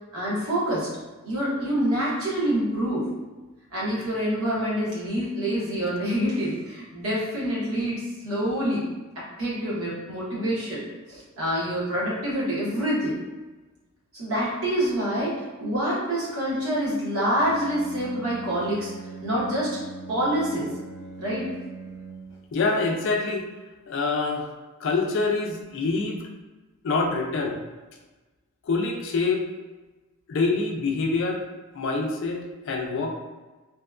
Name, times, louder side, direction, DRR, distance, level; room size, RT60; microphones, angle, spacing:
voice 1, 0.1-0.9 1.2-3.1 3.7-8.8 9.2-10.8 11.1-13.2 14.1-15.3 15.6-18.9 19.2-19.8 20.1-20.7 21.2-21.5, equal, 65° right, -7 dB, 1.0 m, -26 dB
Bowed string instrument, 17.4-22.5, right 4 dB, 80° right, 0.6 m, -41 dB
voice 2, 22.5-23.5 23.9-24.5 24.8-26.3 26.8-27.6 28.7-29.4 30.3-31.4 31.7-33.1, left 3 dB, 55° left, 2 dB, 0.4 m, -25 dB
2.8 x 2.2 x 2.3 m, 1.2 s
head